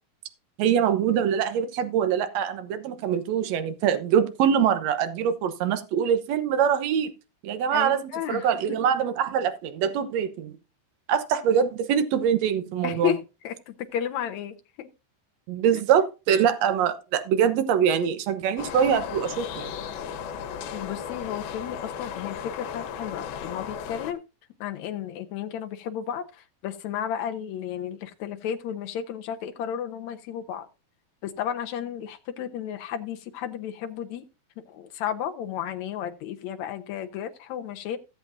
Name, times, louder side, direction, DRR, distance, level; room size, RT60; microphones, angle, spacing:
voice 1, 0.6-7.1 7.4-10.6 11.1-13.1 15.5-19.7, right 8 dB, 65° right, 1.8 m, -24 dB
voice 2, 7.7-8.9 12.8-14.9 20.7-24.2 24.6-26.3 26.6-30.7 31.2-34.2 34.7-38.0, left 9 dB, 75° left, 1.8 m, -33 dB
sound 1, 18.6-24.1, left 8 dB, 90° left, 3.0 m, -35 dB
16.0 x 7.8 x 2.6 m
omnidirectional pair, 4.2 m